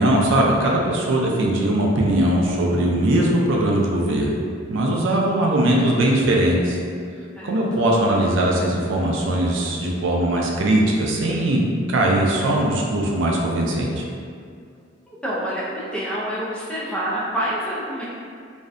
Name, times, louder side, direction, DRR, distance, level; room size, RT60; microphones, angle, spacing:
voice 1, 0.0-4.4 4.7-6.8 7.4-11.6 11.9-14.0, right 1 dB, 80° right, -2 dB, 0.4 m, -20 dB
voice 2, 7.3-7.9 15.1-18.1, equal, 5° left, -8 dB, 0.4 m, -27 dB
2.6 x 2.1 x 2.4 m, 2.2 s
head